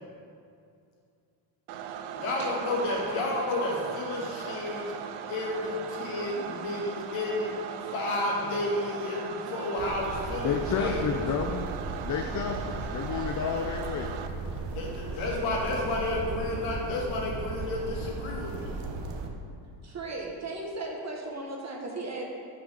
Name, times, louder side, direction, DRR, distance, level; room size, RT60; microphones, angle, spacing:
sound 1, 1.7-14.3, right 8 dB, 80° right, 0.6 m, -39 dB
voice 1, 2.2-4.9 5.3-7.5 7.9-11.0 14.7-18.7, left 2 dB, 80° left, -3 dB, 2.0 m, -31 dB
sound 2, 9.8-19.3, right 3 dB, 60° right, 1.0 m, -36 dB
voice 2, 10.4-11.6 12.0-14.2, left 7 dB, 40° left, 4 dB, 0.6 m, -30 dB
voice 3, 19.8-22.2, right 2 dB, 35° right, -1 dB, 1.6 m, -36 dB
5.7 x 5.4 x 6.2 m, 2.4 s
supercardioid pair, 80°, 48 cm